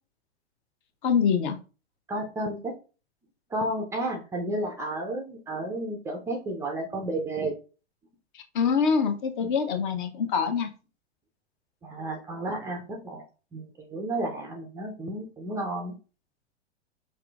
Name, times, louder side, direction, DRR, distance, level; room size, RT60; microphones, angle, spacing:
voice 1, 1.0-1.6 8.3-10.7, left 6 dB, 45° left, 7 dB, 0.8 m, -25 dB
voice 2, 2.1-2.8 3.5-7.5 11.8-13.2 13.5-16.0, right 1 dB, 10° right, 1 dB, 0.4 m, -32 dB
5.7 x 2.5 x 2.3 m, 0.34 s
figure-of-eight pair, 100°, 34 cm